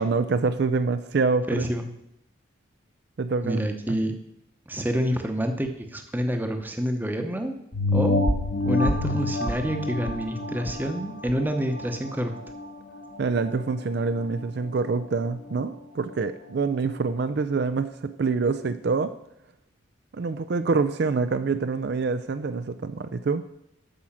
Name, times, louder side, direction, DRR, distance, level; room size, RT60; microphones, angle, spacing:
voice 1, 0.0-1.7 3.2-3.6 3.9-4.0 13.2-19.1 20.1-23.4, right 4 dB, 55° right, 11 dB, 0.4 m, -26 dB
voice 2, 1.5-1.9 3.4-4.1 4.7-7.5 7.9-8.2 8.6-12.3, equal, 10° right, 5 dB, 0.8 m, -27 dB
sound 1, 7.7-12.7 13.2-13.3, left 2 dB, 70° left, 1.5 m, -27 dB
8.7 x 6.2 x 7.2 m, 0.80 s
head